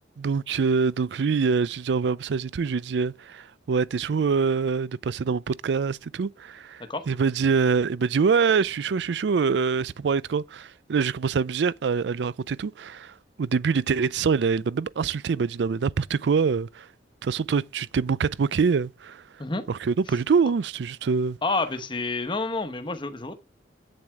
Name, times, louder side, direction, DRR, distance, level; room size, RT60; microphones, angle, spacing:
voice 1, 0.2-16.9 17.2-19.2 19.7-21.4, right 5 dB, 70° right, 0.4 m, -25 dB
voice 2, 21.4-23.3, left 3 dB, 25° left, 1.1 m, -28 dB
8.8 x 7.7 x 3.5 m
head